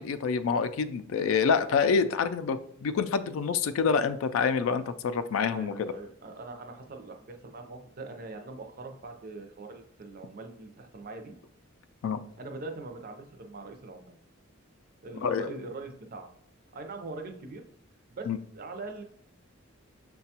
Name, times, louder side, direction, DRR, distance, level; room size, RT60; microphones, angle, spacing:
voice 1, 0.0-5.9 12.0-12.2 15.2-15.5 18.3-18.4, left 5 dB, 75° left, 11 dB, 0.3 m, -27 dB
voice 2, 5.5-11.3 12.4-14.1 15.0-16.3 16.7-17.6 18.1-18.3 18.5-19.0, right 3 dB, 45° right, 4 dB, 0.5 m, -42 dB
6.5 x 2.2 x 2.8 m, 0.65 s
head